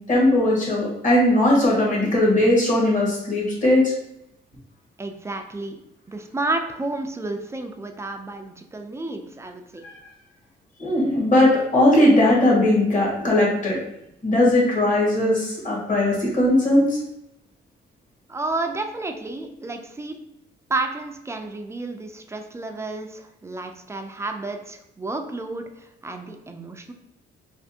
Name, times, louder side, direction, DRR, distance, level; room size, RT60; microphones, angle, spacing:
voice 1, 0.0-3.9 9.8-9.9 10.8-13.8 14.2-17.0, left 1 dB, 40° left, -4 dB, 1.5 m, -19 dB
voice 2, 5.0-5.8 6.1-9.8 18.3-20.2 20.7-26.9, right 2 dB, 15° right, 5 dB, 0.4 m, -31 dB
3.3 x 2.5 x 2.7 m, 0.80 s
cardioid pair, 90°, 20 cm